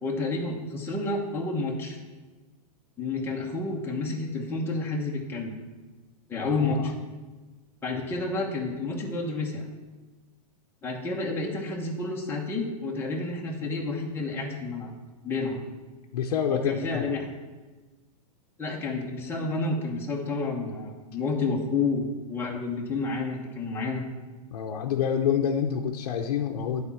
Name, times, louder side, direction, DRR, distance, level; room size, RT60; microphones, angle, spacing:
voice 1, 0.0-2.0 3.0-5.6 6.3-6.9 7.8-9.6 10.8-14.9 15.2-15.6 16.5-17.3 18.6-24.0, left 3 dB, 10° left, -2 dB, 1.1 m, -30 dB
voice 2, 6.4-6.9 16.1-17.1 24.5-26.8, left 8 dB, 65° left, 2 dB, 0.8 m, -28 dB
9.8 x 4.2 x 7.1 m, 1.2 s
supercardioid pair, 150°, 20 cm